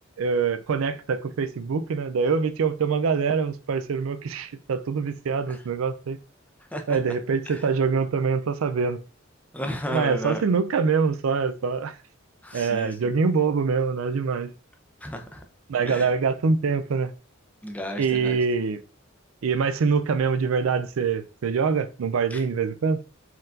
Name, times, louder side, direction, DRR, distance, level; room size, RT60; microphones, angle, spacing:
voice 1, 0.2-6.2 6.9-9.0 9.9-11.9 12.5-14.5 15.7-17.1 18.0-18.8 19.4-23.0, right 5 dB, 90° right, 0.4 m, -24 dB
voice 2, 9.5-10.4 12.4-12.9 15.0-15.4 15.9-16.1 17.6-18.4 22.3-22.4, equal, 5° left, 0.6 m, -33 dB
4.5 x 3.8 x 2.5 m
head